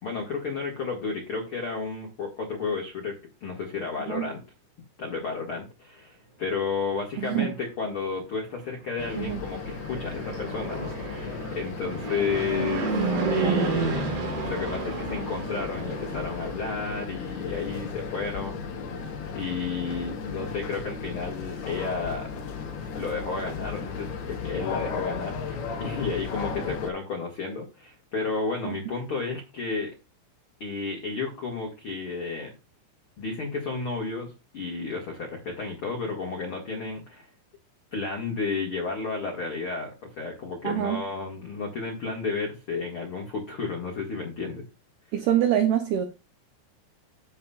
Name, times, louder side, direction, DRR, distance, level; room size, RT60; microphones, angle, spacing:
voice 1, 0.0-4.4 5.0-13.0 13.3-14.0 14.4-18.6 19.3-22.3 22.9-29.9 30.6-32.5 33.2-37.3 37.9-44.7, left 4 dB, 85° left, 1.2 m, -32 dB
voice 2, 7.2-7.5 9.2-9.4 13.4-13.8 28.7-28.8 40.6-41.0 45.1-46.0, right 11 dB, 80° right, 2.3 m, -25 dB
sound 1, 9.0-26.9, left 5 dB, 65° left, 3.0 m, -35 dB
Fixed-wing aircraft airplane, 9.5-16.8, right 3 dB, 65° right, 5.8 m, -31 dB
15.0 x 5.7 x 2.4 m
omnidirectional pair, 5.6 m